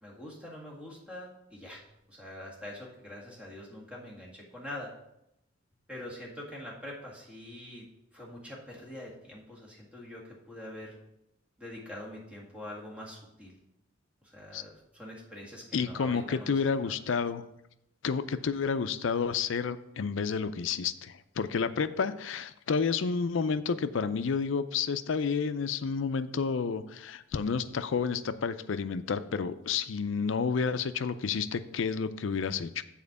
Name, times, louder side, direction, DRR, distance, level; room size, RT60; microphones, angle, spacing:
voice 1, 0.0-1.8 2.1-4.9 5.9-7.8 8.1-11.0 11.6-13.6 14.2-16.9, left 1 dB, 5° right, -3 dB, 1.9 m, -44 dB
voice 2, 15.7-17.4 18.0-32.8, left 5 dB, 70° left, 13 dB, 0.4 m, -30 dB
7.3 x 4.3 x 6.7 m, 0.82 s
head